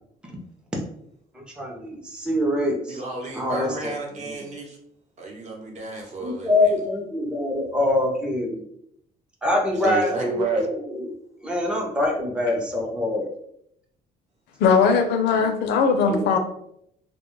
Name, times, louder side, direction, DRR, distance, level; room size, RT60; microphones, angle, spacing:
voice 1, 1.3-3.0 3.2-3.7 4.2-4.3 6.2-8.6 9.4-10.7 10.9-11.1 11.4-13.3 16.1-16.4, left 1 dB, 5° right, -1 dB, 0.5 m, -24 dB
voice 2, 2.9-4.8 5.2-6.7 9.7-10.7, right 3 dB, 45° right, -1 dB, 0.8 m, -31 dB
voice 3, 14.6-16.4, left 5 dB, 75° left, 6 dB, 0.5 m, -19 dB
2.2 x 2.1 x 3.0 m, 0.72 s
cardioid pair, 110°, 17 cm